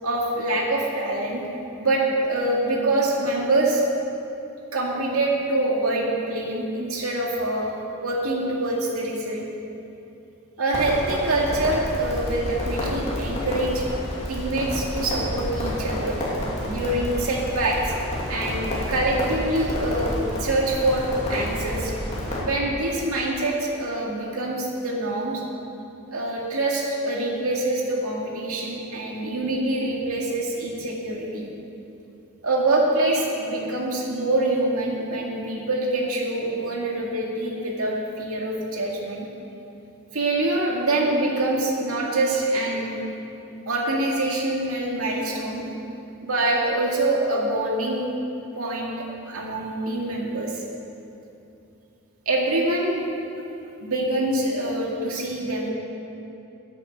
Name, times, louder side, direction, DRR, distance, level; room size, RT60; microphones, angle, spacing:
voice 1, 0.0-1.4 1.8-3.8 4.7-7.7 8.0-9.5 10.6-13.8 14.3-16.2 16.6-18.0 18.3-21.9 22.3-25.4 26.1-31.5 32.4-39.3 40.1-43.0 43.7-45.6 46.2-48.0 48.6-50.6 52.3-53.1 53.8-55.7, right 2 dB, 75° right, -2 dB, 2.2 m, -25 dB
Crackle, 10.7-22.4, left 1 dB, 30° left, 2.6 m, -30 dB
11.0 x 8.8 x 7.4 m, 2.8 s
head